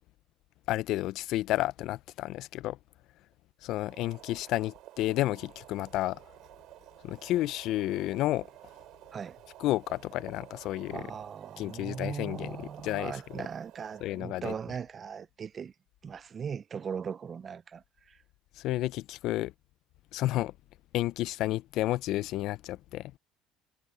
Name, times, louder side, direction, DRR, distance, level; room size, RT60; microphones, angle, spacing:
voice 1, 0.7-2.8 3.6-6.2 7.0-8.5 9.6-11.0 11.6-13.2 14.0-14.5 18.6-19.5 20.1-20.5 20.9-23.1, left 16 dB, 60° left, 0.5 m, -31 dB
Boiling, 3.6-14.6, right 15 dB, 60° right, 7.0 m, -52 dB
voice 2, 10.9-15.7 16.0-18.2, right 7 dB, 30° right, 0.4 m, -39 dB
cardioid pair, 130°, 0 cm